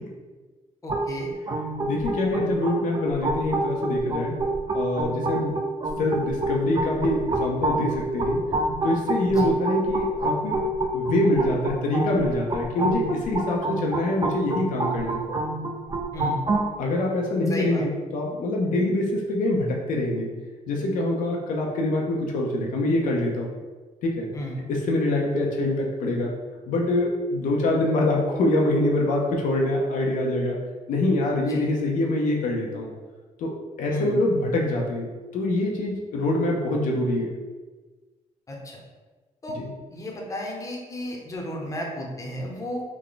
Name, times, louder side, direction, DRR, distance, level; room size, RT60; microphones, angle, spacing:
voice 1, 0.8-1.3 9.3-9.5 16.1-16.4 17.5-17.8 24.3-24.6 31.4-31.7 33.9-34.2 38.5-38.8 39.4-39.6 39.9-42.8, left 1 dB, 25° left, -1 dB, 0.7 m, -33 dB
sound 1, 0.9-16.7, right 1 dB, 30° right, 0.5 m, -28 dB
voice 2, 1.8-4.4 4.7-5.6 6.0-8.4 8.8-10.6 10.9-15.3 16.8-20.3 20.7-23.5 24.0-24.3 24.7-26.3 26.7-30.6 30.9-32.9 33.4-33.5 33.8-37.3 39.6-39.7, left 1 dB, 85° left, -1 dB, 0.6 m, -25 dB
3.5 x 2.2 x 3.8 m, 1.3 s
cardioid pair, 110°, 13 cm